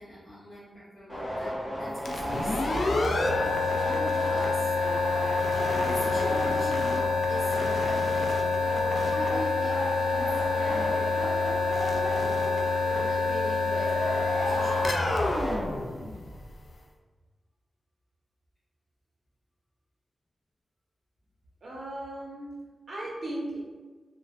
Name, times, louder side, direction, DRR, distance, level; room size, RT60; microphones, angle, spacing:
voice 1, 0.0-3.3 3.6-4.7 5.8-8.6 9.0-11.4 11.9-12.5 12.9-15.0, left 1 dB, 40° left, -12 dB, 0.9 m, -42 dB
sound 1, 1.1-16.1, equal, ahead, 1.0 m, -35 dB
sound 2, 2.0-16.6, left 3 dB, 70° left, 0.3 m, -27 dB
voice 2, 21.6-23.6, right 1 dB, 60° right, -5 dB, 0.6 m, -37 dB
3.1 x 2.1 x 2.4 m, 1.3 s
wide cardioid pair, 85°, 0 cm